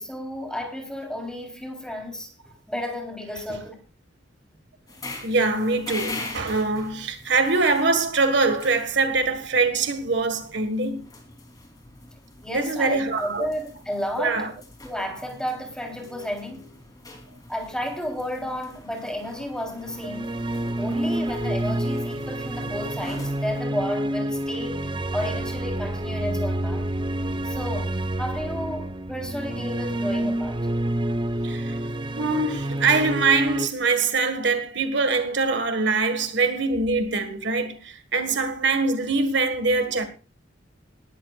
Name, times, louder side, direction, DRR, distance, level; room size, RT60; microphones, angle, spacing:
voice 1, 0.0-2.3 2.7-3.8 12.4-14.5 14.8-16.7 17.5-20.3 20.8-26.9 27.4-30.7, equal, 5° left, 3.6 m, -32 dB
sound 1, 4.9-23.6, left 2 dB, 20° left, 3.4 m, -43 dB
voice 2, 5.2-11.0 12.5-13.5 14.2-14.5 31.4-31.7 32.2-40.0, right 3 dB, 65° right, 1.7 m, -23 dB
sound 2, 19.8-33.7, right 1 dB, 25° right, 0.7 m, -28 dB
19.5 x 13.0 x 2.5 m
head